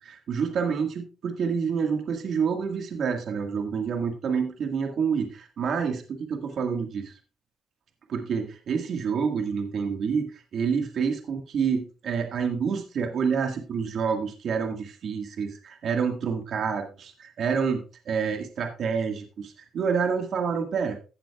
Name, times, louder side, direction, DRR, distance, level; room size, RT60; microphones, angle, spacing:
voice 1, 0.0-7.1 8.1-21.0, right 6 dB, 65° right, 4 dB, 1.7 m, -28 dB
15.0 x 7.7 x 2.3 m, 0.34 s
cardioid pair, 90°, 0 cm